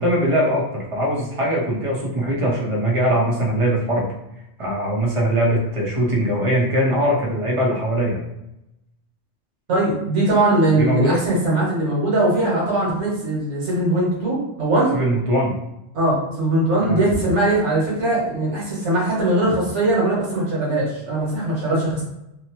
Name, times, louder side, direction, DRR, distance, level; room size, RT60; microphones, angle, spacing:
voice 1, 0.0-4.0 4.6-8.2 10.7-11.2 14.9-15.6 16.8-17.0, right 1 dB, 35° right, -4 dB, 0.7 m, -21 dB
voice 2, 9.7-14.9 15.9-22.0, right 1 dB, 85° right, -6 dB, 1.3 m, -20 dB
2.8 x 2.0 x 2.8 m, 0.87 s
omnidirectional pair, 1.2 m